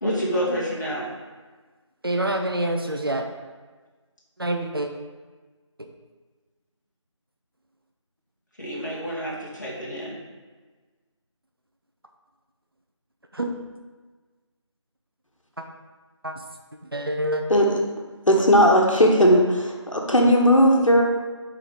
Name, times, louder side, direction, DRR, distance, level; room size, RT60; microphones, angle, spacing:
voice 1, 0.0-1.1 8.6-10.2, equal, 35° left, -6 dB, 1.7 m, -28 dB
voice 2, 2.0-3.3 4.4-4.9 13.3-13.5 16.2-16.3 16.9-17.4, right 1 dB, 50° right, 4 dB, 0.6 m, -26 dB
voice 3, 17.5-17.8 18.3-21.0, equal, 85° left, 0 dB, 1.3 m, -17 dB
5.0 x 4.8 x 4.6 m, 1.4 s
figure-of-eight pair, 170°, 16 cm